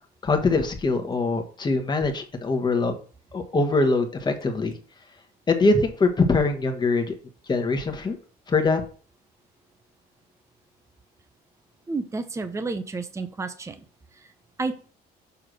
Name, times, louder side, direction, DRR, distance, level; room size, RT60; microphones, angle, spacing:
voice 1, 0.2-2.9 3.3-4.7 5.5-7.2 7.5-8.2 8.5-8.8, left 3 dB, 25° left, 5 dB, 1.5 m, -23 dB
voice 2, 11.9-13.8 14.1-14.3 14.6-14.9, right 3 dB, 15° right, 9 dB, 0.8 m, -31 dB
6.9 x 3.6 x 6.2 m, 0.39 s
cardioid pair, 110°, 17 cm